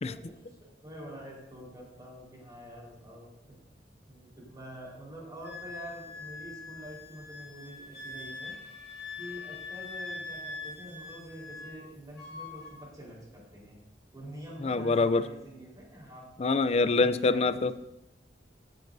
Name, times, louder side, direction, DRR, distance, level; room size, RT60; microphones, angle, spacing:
voice 1, 0.0-3.5 4.1-8.5 9.2-13.8 14.1-16.2 16.8-17.7, right 1 dB, 20° right, -4 dB, 4.1 m, -46 dB
Wind instrument woodwind instrument, 5.4-11.8 12.1-12.8, left 3 dB, 60° left, 2.4 m, -43 dB
voice 2, 14.6-15.2 16.4-17.7, left 3 dB, 35° left, 13 dB, 0.4 m, -25 dB
16.0 x 9.3 x 2.7 m, 0.90 s
head